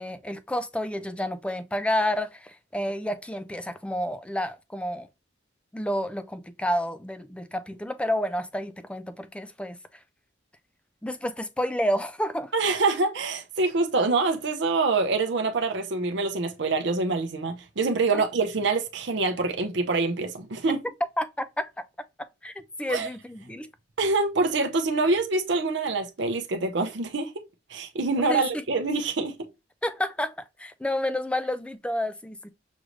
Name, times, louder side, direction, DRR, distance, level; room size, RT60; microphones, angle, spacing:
voice 1, 0.0-5.1 5.7-9.8 11.0-12.5 18.1-18.2 21.2-21.7 22.2-23.7 28.3-28.4 29.8-32.5, left 1 dB, 5° left, 0.3 m, -30 dB
voice 2, 12.5-20.8 22.9-23.1 24.0-27.3 27.7-29.4, right 3 dB, 60° right, 0.6 m, -25 dB
6.1 x 2.5 x 3.1 m
head